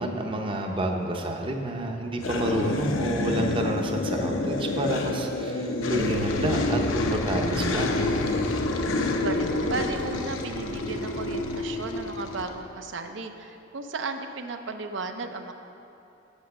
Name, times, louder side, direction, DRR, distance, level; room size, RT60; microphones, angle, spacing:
voice 1, 0.0-7.9, right 1 dB, 25° right, 3 dB, 0.7 m, -29 dB
sound 1, 2.2-12.5, left 2 dB, 85° left, 0.7 m, -28 dB
voice 2, 9.1-15.5, right 3 dB, 70° right, 6 dB, 0.6 m, -35 dB
8.2 x 6.2 x 6.4 m, 2.8 s
head